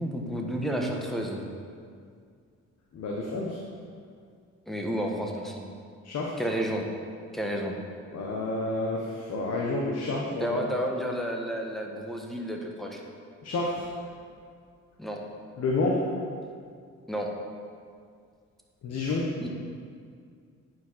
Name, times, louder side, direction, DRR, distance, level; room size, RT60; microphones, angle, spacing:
voice 1, 0.0-1.4 4.7-5.7 6.4-6.9 7.3-7.7 10.3-13.0 15.0-15.2 17.1-17.3 19.4-19.5, equal, ahead, 0 dB, 1.2 m, -31 dB
voice 2, 2.9-3.6 6.0-6.3 8.1-10.6 13.4-13.9 15.6-16.1 18.8-19.3, left 2 dB, 60° left, -2 dB, 1.2 m, -29 dB
9.1 x 4.8 x 5.7 m, 2.2 s
cardioid pair, 90°, 30 cm